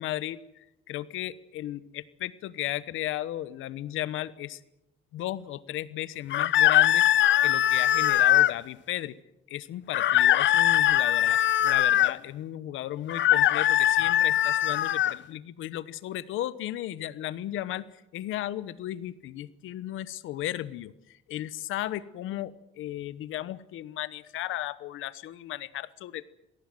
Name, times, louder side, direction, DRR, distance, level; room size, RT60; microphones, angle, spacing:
voice 1, 0.0-4.6 5.1-7.1 7.4-9.2 9.5-26.3, left 13 dB, 90° left, 17 dB, 1.1 m, -35 dB
sound 1, 6.3-8.5 9.9-12.1 13.1-15.2, left 12 dB, 70° left, 0.7 m, -21 dB
26.5 x 18.5 x 7.8 m, 0.87 s
cardioid pair, 90°, 20 cm